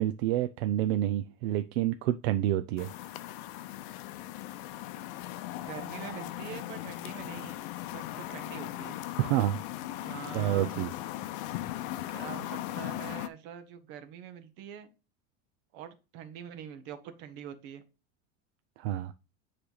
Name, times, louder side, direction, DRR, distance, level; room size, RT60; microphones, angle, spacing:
voice 1, 0.0-2.9 9.2-9.6 9.9-10.1 10.3-10.9 18.8-19.1, right 13 dB, 80° right, 0.6 m, -28 dB
sound 1, 2.8-13.3, left 14 dB, 55° left, 0.6 m, -38 dB
voice 2, 5.6-7.6 7.9-9.0 10.0-10.7 12.1-14.9 15.7-17.8, right 9 dB, 55° right, 1.2 m, -44 dB
9.8 x 3.3 x 3.9 m
cardioid pair, 170°, 32 cm